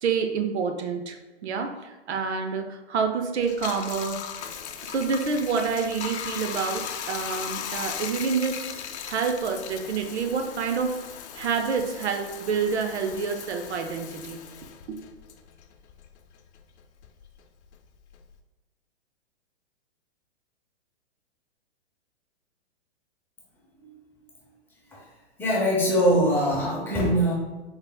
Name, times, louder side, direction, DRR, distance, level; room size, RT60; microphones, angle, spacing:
voice 1, 0.0-1.2 1.4-4.2 4.9-11.0 11.3-14.4 14.9-15.1, right 5 dB, 85° right, 5 dB, 0.6 m, -28 dB
Bathtub (filling or washing), 3.4-16.2 16.6-18.4, left 8 dB, 80° left, 0.5 m, -37 dB
voice 2, 25.4-27.3, equal, 5° left, -5 dB, 0.6 m, -22 dB
3.9 x 3.5 x 2.2 m, 1.2 s
hypercardioid pair, 135°, 33 cm